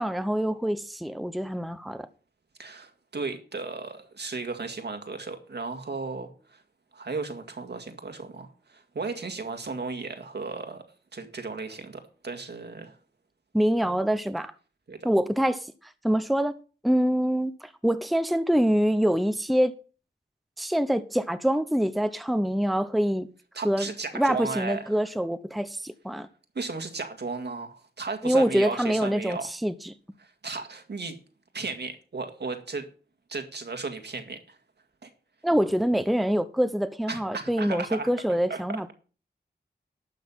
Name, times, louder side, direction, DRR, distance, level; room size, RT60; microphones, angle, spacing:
voice 1, 0.0-2.1 13.5-14.5 15.0-16.6 16.8-19.7 20.6-23.3 23.6-26.3 28.2-29.9 35.4-38.9, equal, ahead, 0.8 m, -25 dB
voice 2, 2.6-6.6 6.9-10.8 11.1-13.0 14.9-15.1 23.5-24.9 26.6-29.5 30.2-31.2 31.5-32.9 33.3-34.6 35.0-35.1 37.1-38.1 38.5-38.6, right 4 dB, 70° right, 2.0 m, -35 dB
12.0 x 6.7 x 5.6 m
cardioid pair, 60°, 18 cm